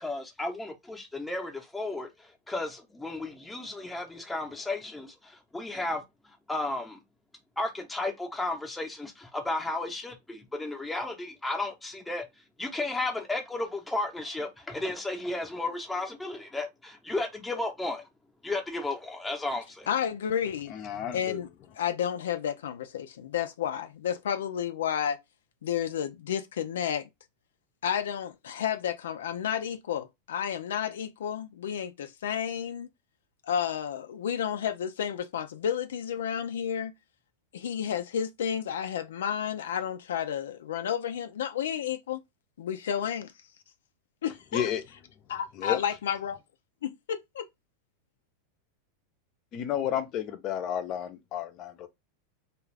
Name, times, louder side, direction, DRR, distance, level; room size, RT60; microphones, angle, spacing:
voice 1, 0.0-2.1 2.5-6.0 6.5-7.0 7.6-12.2 12.6-18.0 18.4-19.9, left 2 dB, 5° left, 0.7 m, -33 dB
voice 2, 19.9-20.7 21.1-21.5 21.7-25.2 25.6-27.1 27.8-32.9 33.5-36.9 37.5-42.2 42.6-43.3 44.2-44.7 45.3-46.4 46.8-47.5, left 9 dB, 85° left, 0.4 m, -31 dB
voice 3, 20.7-21.4 44.5-44.8 45.6-45.8 49.5-51.9, left 9 dB, 40° left, 0.6 m, -31 dB
2.4 x 2.4 x 3.2 m
supercardioid pair, 125°, 0 cm